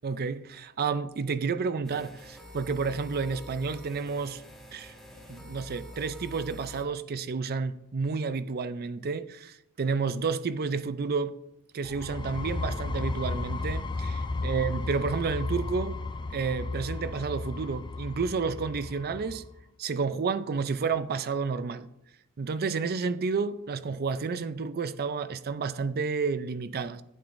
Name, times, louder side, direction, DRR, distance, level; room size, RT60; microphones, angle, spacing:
voice 1, 0.0-4.4 4.7-4.9 5.3-11.4 11.7-16.0 16.3-19.4 19.8-21.9 22.4-27.0, right 5 dB, 45° right, 0.5 m, -30 dB
sound 1, 1.8-6.8, equal, ahead, 1.7 m, -46 dB
sound 2, 11.8-19.5, left 3 dB, 20° left, 0.4 m, -34 dB
11.5 x 8.9 x 2.6 m
head